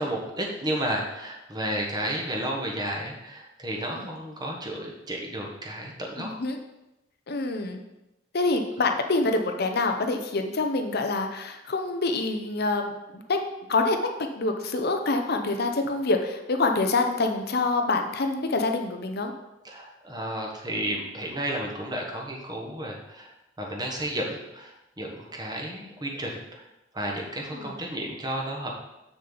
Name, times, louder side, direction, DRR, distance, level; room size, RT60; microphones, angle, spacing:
voice 1, 0.0-6.3 19.6-23.3 23.6-26.6 26.9-28.7, right 1 dB, 20° right, -1 dB, 1.3 m, -32 dB
voice 2, 6.2-6.6 7.3-7.8 8.3-13.4 13.7-14.0 14.4-19.3 27.5-27.7, left 3 dB, 55° left, 5 dB, 0.7 m, -26 dB
7.3 x 6.6 x 3.9 m, 0.95 s
head